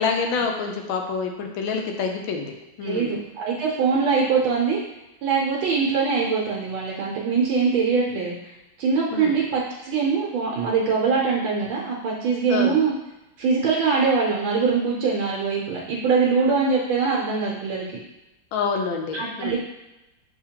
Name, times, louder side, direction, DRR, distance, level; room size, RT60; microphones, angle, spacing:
voice 1, 0.0-3.1 9.1-9.4 12.5-12.8 18.5-19.6, left 5 dB, 80° left, 3 dB, 1.4 m, -27 dB
voice 2, 2.8-4.8 5.2-8.3 8.8-12.9 13.4-17.9 19.1-19.6, right 5 dB, 80° right, -3 dB, 1.5 m, -23 dB
6.6 x 2.8 x 2.8 m, 0.98 s
omnidirectional pair, 2.2 m